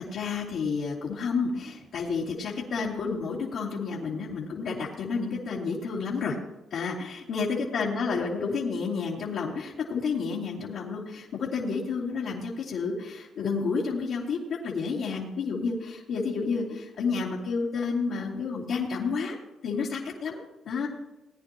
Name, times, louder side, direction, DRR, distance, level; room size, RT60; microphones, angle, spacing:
voice 1, 0.0-6.4 6.7-19.4 19.6-20.9, left 5 dB, 75° left, -7 dB, 2.4 m, -30 dB
19.0 x 9.9 x 2.9 m, 1.0 s
cardioid pair, 90°, 0 cm